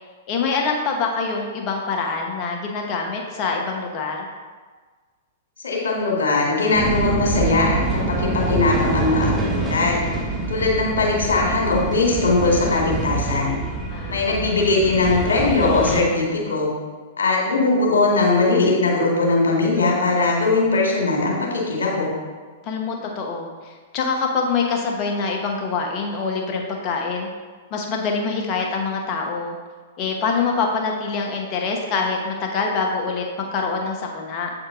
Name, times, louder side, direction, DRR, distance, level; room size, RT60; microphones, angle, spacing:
voice 1, 0.3-4.3 13.9-14.6 22.6-27.3 27.7-29.5 30.0-34.5, left 4 dB, 40° left, 1 dB, 1.3 m, -25 dB
voice 2, 5.6-10.0 10.5-13.6 14.1-16.7 17.2-22.1, left 3 dB, 75° left, -2 dB, 2.0 m, -20 dB
sound 1, 6.7-16.0, right 2 dB, 10° right, 1.3 m, -25 dB
8.0 x 4.3 x 3.9 m, 1.4 s
hypercardioid pair, 110°, 0 cm